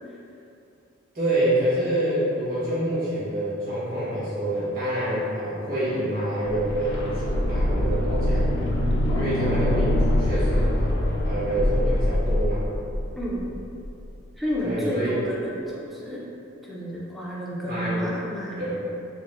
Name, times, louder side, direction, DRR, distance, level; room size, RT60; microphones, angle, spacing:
voice 1, 1.1-8.4 9.1-10.7 11.2-12.6 14.6-15.1 17.7-18.0 18.6-18.7, right 1 dB, 50° right, -12 dB, 1.3 m, -27 dB
sound 1, 6.5-14.2 14.5-14.6, left 1 dB, 60° left, 0.5 m, -24 dB
voice 2, 13.2-13.5 14.4-16.3 16.6-18.7, equal, ahead, -6 dB, 0.4 m, -31 dB
4.4 x 2.0 x 2.5 m, 2.6 s
head